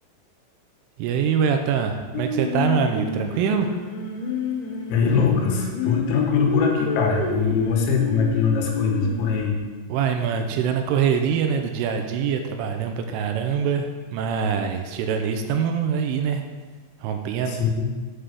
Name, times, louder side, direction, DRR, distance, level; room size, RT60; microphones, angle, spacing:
voice 1, 1.0-3.7 9.9-16.4 17.0-17.6, right 7 dB, 80° right, 5 dB, 3.1 m, -24 dB
Singing, 2.1-9.4, left 5 dB, 65° left, 2.8 m, -29 dB
voice 2, 4.9-9.6 17.5-17.9, left 5 dB, 85° left, 1 dB, 3.9 m, -22 dB
8.2 x 5.8 x 6.6 m, 1.4 s
omnidirectional pair, 5.9 m